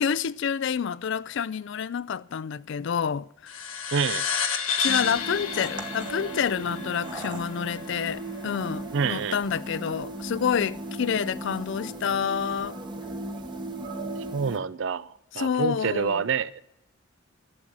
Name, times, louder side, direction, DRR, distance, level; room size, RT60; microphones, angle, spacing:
voice 1, 0.0-3.5 4.8-12.8 15.3-16.2, left 7 dB, 60° left, 0.4 m, -28 dB
sound 1, 3.5-8.4, left 6 dB, 85° left, 1.3 m, -31 dB
voice 2, 3.9-4.3 8.9-9.4 14.3-16.6, right 6 dB, 60° right, 0.5 m, -27 dB
sound 2, 4.9-14.6, right 2 dB, 20° right, 1.0 m, -37 dB
12.0 x 7.8 x 7.2 m
head